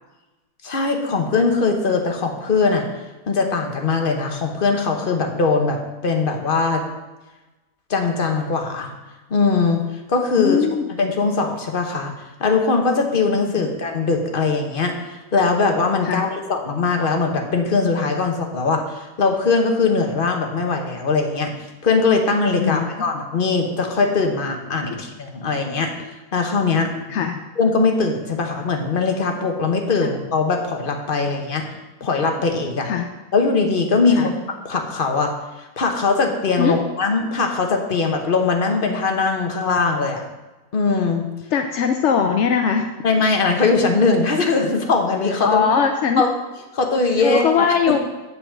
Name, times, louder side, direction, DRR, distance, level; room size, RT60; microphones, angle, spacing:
voice 1, 0.6-2.9 3.3-6.8 7.9-8.9 9.3-9.8 10.1-10.7 11.0-12.1 12.4-21.5 21.8-25.9 26.3-26.9 27.6-31.6 32.0-32.9 33.3-34.3 34.6-35.3 35.6-40.2 40.7-41.2 43.0-45.6 46.2-46.3 46.7-48.0, left 4 dB, 35° left, 3 dB, 1.1 m, -20 dB
voice 2, 10.4-10.9 13.5-13.7 16.0-16.2 22.6-22.9 24.9-25.0 27.1-27.4 30.0-30.1 32.8-33.1 34.1-34.3 36.6-36.8 41.5-42.9 45.4-46.3 47.2-48.0, left 7 dB, 70° left, 6 dB, 0.6 m, -20 dB
8.3 x 5.0 x 7.4 m, 1.1 s
omnidirectional pair, 1.8 m